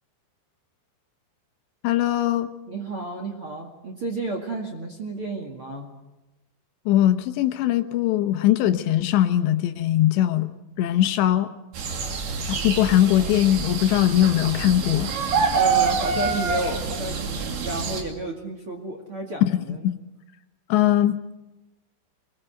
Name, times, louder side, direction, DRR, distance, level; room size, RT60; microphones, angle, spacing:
voice 1, 1.8-2.5 6.9-10.5 10.8-11.5 12.5-15.1 19.8-20.0 20.7-21.2, left 12 dB, 75° left, 9 dB, 3.1 m, -20 dB
voice 2, 2.7-5.9 15.5-19.9, right 2 dB, 40° right, 1 dB, 2.1 m, -32 dB
sound 1, 11.7-18.0, right 5 dB, 60° right, 4.2 m, -26 dB
25.0 x 20.5 x 7.8 m, 1.0 s
omnidirectional pair, 5.3 m